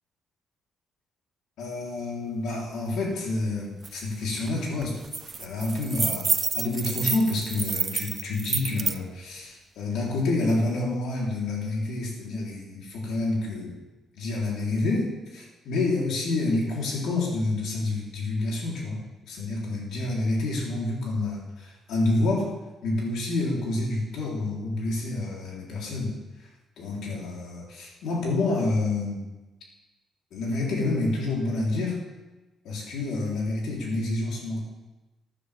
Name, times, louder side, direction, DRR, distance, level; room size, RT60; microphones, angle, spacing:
voice 1, 1.6-5.0 5.4-13.7 14.2-22.5 22.8-26.1 26.8-29.2 30.3-32.0 32.6-34.6, left 2 dB, 80° left, -3 dB, 4.1 m, -28 dB
sound 1, 3.8-3.9 4.3-4.5 4.8-9.0, right 5 dB, 35° right, 0.5 m, -29 dB
16.0 x 10.0 x 3.7 m, 1.1 s
cardioid pair, 90°, 0 cm